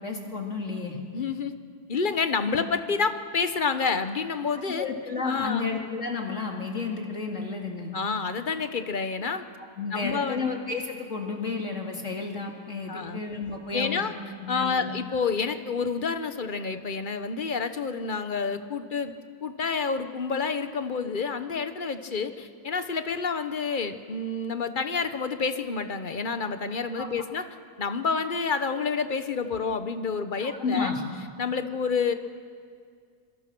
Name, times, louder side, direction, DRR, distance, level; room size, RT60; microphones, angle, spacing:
voice 1, 0.0-1.0 2.5-2.6 4.7-7.9 9.8-14.1 14.4-14.9 27.0-27.1 30.4-31.0, left 4 dB, 55° left, 1 dB, 2.7 m, -32 dB
voice 2, 1.1-1.5 1.9-4.9 5.2-5.7 7.9-9.4 9.9-10.5 12.9-13.2 13.7-14.1 14.5-19.1 19.4-27.4 27.8-30.9 31.4-32.1, left 5 dB, 40° left, 9 dB, 1.1 m, -29 dB
26.5 x 22.5 x 6.1 m, 2.1 s
omnidirectional pair, 1.6 m